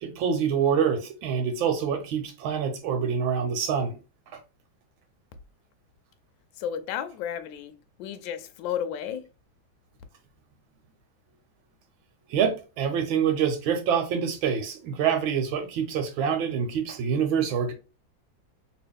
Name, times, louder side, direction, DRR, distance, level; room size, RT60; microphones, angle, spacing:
voice 1, 0.0-4.0 12.3-17.7, right 7 dB, 85° right, 1.6 m, -26 dB
voice 2, 6.6-7.7 8.0-9.2, left 9 dB, 75° left, 1.2 m, -32 dB
3.0 x 2.9 x 3.4 m
omnidirectional pair, 2.1 m